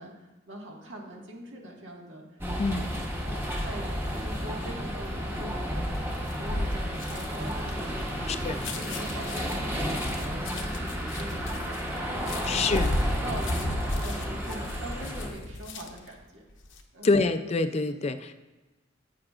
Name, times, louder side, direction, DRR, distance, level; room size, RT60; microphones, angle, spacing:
voice 1, 0.0-11.8 12.1-12.9 13.2-16.4 16.9-17.2, right 1 dB, 85° right, -1 dB, 1.6 m, -43 dB
sound 1, 2.4-15.3, equal, 10° right, 0.9 m, -32 dB
sound 2, 5.9-16.1 16.5-16.8, left 1 dB, 90° left, 0.8 m, -34 dB
voice 2, 8.3-8.6 12.5-12.9 17.0-18.3, left 3 dB, 35° left, 10 dB, 0.3 m, -26 dB
9.8 x 8.4 x 2.4 m, 1.2 s
head